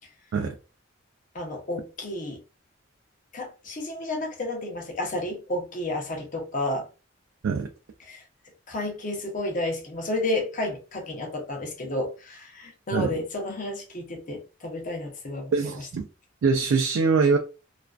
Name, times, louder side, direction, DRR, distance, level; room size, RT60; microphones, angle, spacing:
voice 1, 1.3-2.4 3.3-6.9 8.0-8.2 8.7-15.5, left 1 dB, 40° left, 0.6 m, -31 dB
voice 2, 15.5-16.1 16.4-17.4, right 4 dB, 85° right, 0.3 m, -23 dB
2.4 x 2.1 x 2.3 m
head